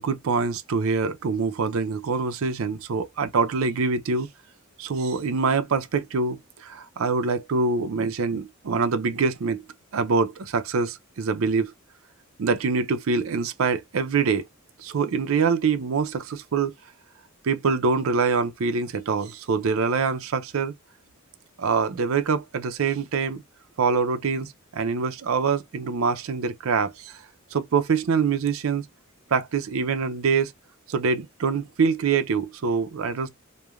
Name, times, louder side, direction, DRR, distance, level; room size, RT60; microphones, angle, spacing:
voice 1, 0.0-4.3 4.8-9.6 9.9-11.7 12.4-14.4 14.8-16.7 17.4-20.7 21.6-23.4 23.8-27.2 27.5-28.8 29.3-30.5 30.9-33.3, right 5 dB, 75° right, 0.5 m, -25 dB
3.1 x 2.1 x 2.3 m
head